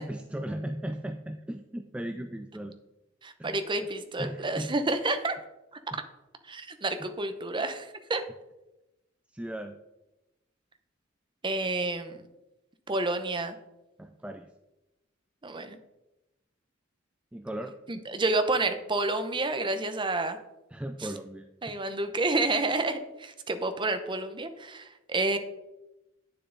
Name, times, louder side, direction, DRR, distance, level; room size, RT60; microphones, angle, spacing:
voice 1, 0.0-2.8 3.4-3.6 4.2-4.7 5.9-6.0 7.0-7.1 9.3-9.8 14.0-14.5 17.3-17.8 20.7-21.8, right 1 dB, 5° right, 6 dB, 0.3 m, -37 dB
voice 2, 3.2-5.4 6.5-8.2 11.4-12.2 12.9-13.5 15.4-15.8 17.9-20.4 21.0-21.1 21.6-25.4, right 2 dB, 25° right, 9 dB, 0.7 m, -29 dB
9.3 x 6.8 x 3.8 m, 0.98 s
head